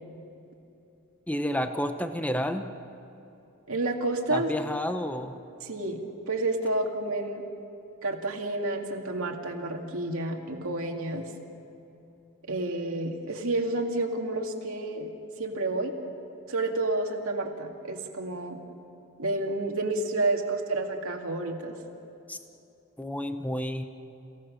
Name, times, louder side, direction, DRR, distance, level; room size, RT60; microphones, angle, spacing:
voice 1, 1.3-2.7 4.3-5.4 22.3-22.4 23.0-23.8, left 1 dB, 5° left, 8 dB, 0.8 m, -30 dB
voice 2, 3.7-4.5 5.6-6.0 6.3-7.4 8.0-11.2 12.5-15.1 15.4-15.9 16.5-18.6 19.2-21.8, right 2 dB, 65° right, 1 dB, 2.4 m, -30 dB
29.0 x 17.0 x 6.5 m, 2.9 s
head